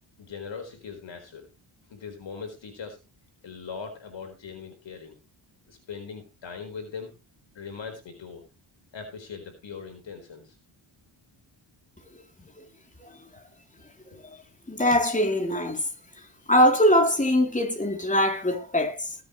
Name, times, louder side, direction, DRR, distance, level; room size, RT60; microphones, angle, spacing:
voice 1, 0.2-1.5 1.9-3.0 3.4-5.1 5.7-7.1 7.5-8.4 8.9-10.6, left 5 dB, 65° left, 4.4 m, -40 dB
voice 2, 14.7-15.9 16.5-19.2, equal, 15° left, 3.4 m, -22 dB
20.0 x 8.3 x 3.2 m
cardioid pair, 90°, 47 cm